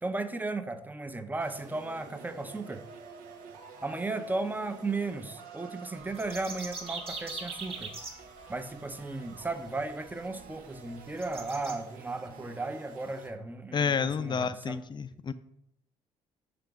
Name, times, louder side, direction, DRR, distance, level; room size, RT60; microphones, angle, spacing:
voice 1, 0.0-2.8 3.8-7.9 8.5-14.8, right 3 dB, 10° right, 9 dB, 0.6 m, -35 dB
sound 1, 1.4-13.3, right 5 dB, 70° right, 0.7 m, -50 dB
sound 2, 6.0-8.1 9.9-10.0 10.4-10.5 11.2-11.7, right 3 dB, 40° right, 1.6 m, -40 dB
voice 2, 13.7-15.3, left 6 dB, 30° left, 13 dB, 0.4 m, -30 dB
5.7 x 3.4 x 4.9 m, 0.74 s
hypercardioid pair, 50°, 15 cm